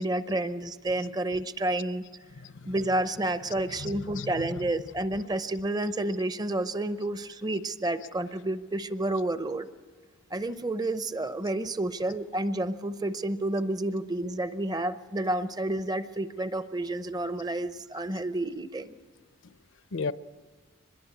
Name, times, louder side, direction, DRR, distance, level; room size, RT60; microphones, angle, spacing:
voice 1, 0.0-2.0 2.6-9.7 10.3-19.0, right 1 dB, 20° right, 12 dB, 0.6 m, -30 dB
voice 2, 3.7-4.6 19.9-20.1, left 4 dB, 65° left, 15 dB, 0.6 m, -34 dB
24.0 x 21.5 x 8.3 m, 1.4 s
head